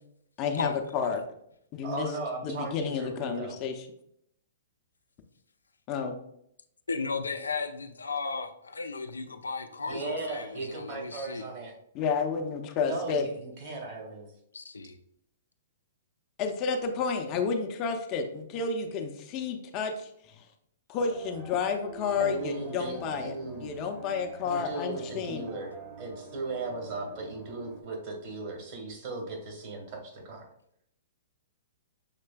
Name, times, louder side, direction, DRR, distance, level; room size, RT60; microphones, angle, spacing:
voice 1, 0.4-1.2 1.7-2.1 2.4-3.9 5.9-6.2 11.9-13.2 16.4-20.5 20.9-23.3 23.6-25.5, left 5 dB, 35° left, 5 dB, 0.6 m, -31 dB
voice 2, 1.8-3.6 9.9-11.7 12.8-14.3 22.2-23.7 24.4-30.5, right 3 dB, 45° right, 1 dB, 1.5 m, -37 dB
voice 3, 6.9-11.4 14.5-15.0, left 4 dB, 85° left, 8 dB, 0.4 m, -35 dB
sound 1, 21.0-27.8, right 4 dB, 20° right, 1.0 m, -47 dB
6.6 x 3.2 x 2.2 m, 0.73 s
hypercardioid pair, 115°, 0 cm